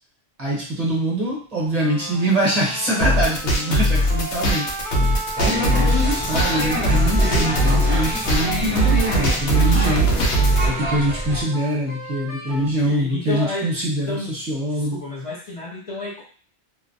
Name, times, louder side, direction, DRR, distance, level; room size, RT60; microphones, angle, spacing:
voice 1, 0.4-4.7 5.4-10.1 10.7-15.0, right 1 dB, 40° right, -4 dB, 0.8 m, -24 dB
sound 1, 1.8-12.7, right 2 dB, 20° left, 0.8 m, -35 dB
sound 2, 3.0-10.7, right 1 dB, 85° left, 0.9 m, -20 dB
sound 3, 5.4-11.4, equal, 20° right, 0.3 m, -26 dB
voice 2, 12.5-13.7 14.1-14.4 14.7-16.2, left 2 dB, 45° left, -6 dB, 0.4 m, -31 dB
2.5 x 2.0 x 2.6 m, 0.42 s
omnidirectional pair, 1.1 m